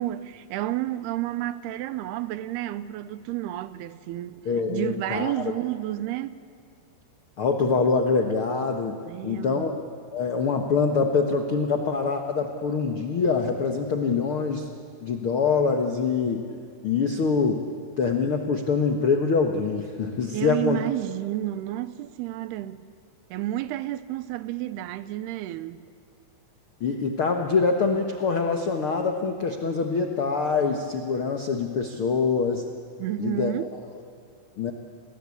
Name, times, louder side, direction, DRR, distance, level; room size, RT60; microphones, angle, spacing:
voice 1, 0.0-4.4 4.7-6.4 9.1-9.8 20.3-22.8 23.3-25.8 33.0-33.7, right 14 dB, 90° right, 2.8 m, -31 dB
voice 2, 4.4-5.4 7.4-9.0 9.2-9.7 10.1-14.7 15.0-16.4 16.8-17.6 18.0-20.8 26.8-32.6 33.2-33.5 34.6-34.7, left 4 dB, 70° left, 1.2 m, -24 dB
30.0 x 21.0 x 8.5 m
omnidirectional pair, 4.6 m